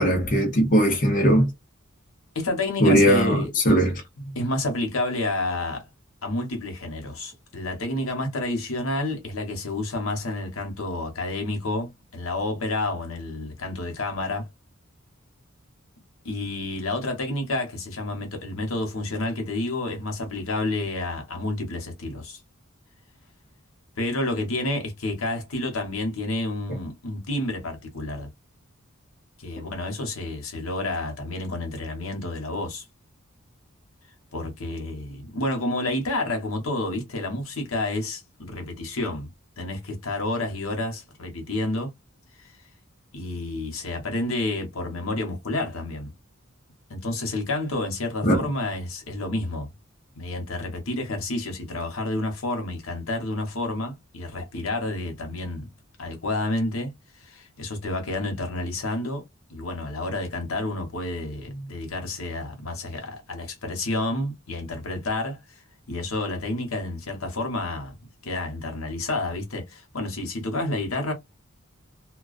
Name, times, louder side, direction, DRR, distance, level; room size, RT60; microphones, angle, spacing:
voice 1, 0.0-1.5 2.8-4.0 48.2-48.4, equal, 40° left, 0.7 m, -19 dB
voice 2, 2.3-3.5 4.2-5.9 6.2-14.5 16.2-22.4 24.0-28.3 29.4-32.8 34.3-39.3 39.6-41.9 42.4-42.5 43.1-46.1 46.9-49.7 50.2-55.7 56.0-59.2 59.5-65.6 65.9-67.9 68.2-71.1, left 2 dB, 80° left, 1.0 m, -29 dB
2.3 x 2.2 x 2.4 m
head